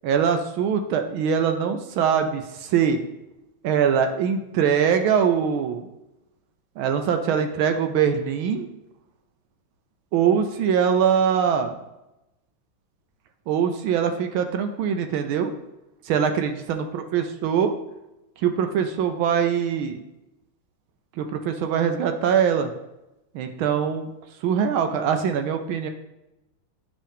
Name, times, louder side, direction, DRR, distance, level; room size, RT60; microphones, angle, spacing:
voice 1, 0.0-3.0 3.6-5.9 6.8-8.7 10.1-11.7 13.5-15.5 16.0-17.7 18.4-20.0 21.2-22.7 23.3-24.1 24.4-25.9, right 7 dB, 75° right, 6 dB, 1.4 m, -22 dB
10.0 x 3.7 x 3.5 m, 0.94 s
omnidirectional pair, 2.4 m